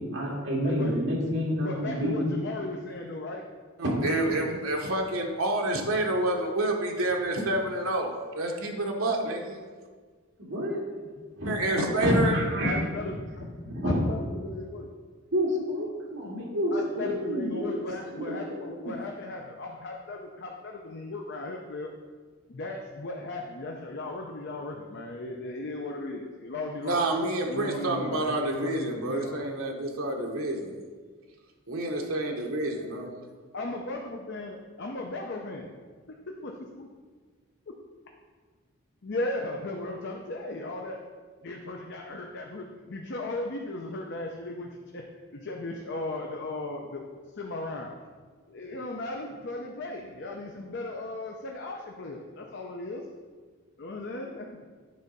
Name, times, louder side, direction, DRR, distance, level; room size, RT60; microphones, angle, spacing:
voice 1, 0.1-2.2 3.8-4.0 4.3-4.4 7.1-7.3 10.5-10.8 11.4-11.5 12.0-12.8 13.6-14.0 15.3-17.7 18.2-19.0, equal, 60° right, -4 dB, 2.1 m, -28 dB
voice 2, 1.6-3.4 4.5-4.6 12.6-13.2 13.8-14.9 16.7-21.9 22.5-27.0 27.5-29.4 33.5-35.7 36.4-36.9 37.7-37.8 39.0-41.0 41.4-45.0 45.3-47.0 47.3-47.9 48.5-53.0 53.8-54.6, left 2 dB, 55° left, 1 dB, 0.6 m, -36 dB
voice 3, 3.8-9.6 11.5-12.3 26.8-30.7 31.7-33.2, right 1 dB, 75° right, 1 dB, 1.1 m, -28 dB
9.6 x 3.9 x 5.3 m, 1.5 s
head